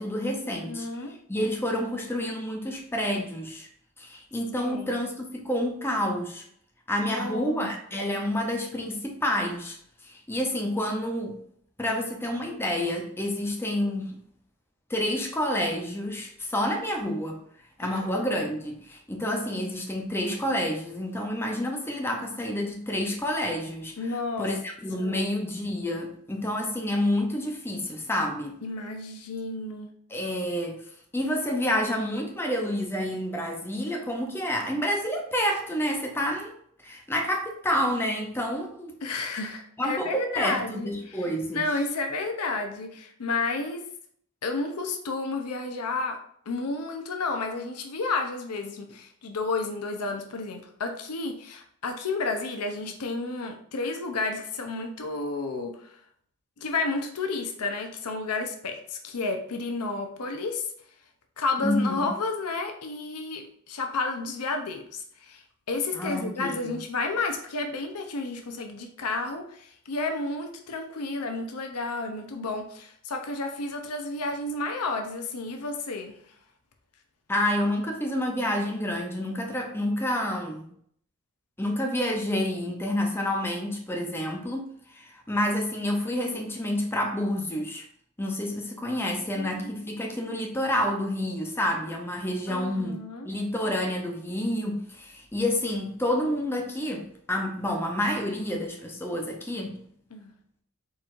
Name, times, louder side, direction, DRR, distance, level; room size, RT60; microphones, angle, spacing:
voice 1, 0.0-0.9 1.3-3.7 4.0-6.4 6.9-9.8 10.0-11.4 11.8-14.2 14.9-17.4 17.8-23.9 24.4-28.5 30.1-30.8 31.1-36.5 36.8-38.9 39.8-41.6 61.6-62.1 66.0-66.8 77.3-80.7 81.6-87.8 88.2-93.0 93.2-99.8, left 1 dB, 10° left, 0.6 m, -29 dB
voice 2, 0.7-1.1 4.6-5.0 7.1-7.7 8.1-8.2 17.8-18.0 24.0-24.5 25.0-25.2 28.6-29.9 39.0-43.9 44.4-46.2 46.5-56.0 56.6-60.7 61.4-76.2 89.4-89.7 92.5-93.3 100.1-100.3, left 3 dB, 90° left, 0.7 m, -31 dB
4.5 x 3.9 x 2.5 m
head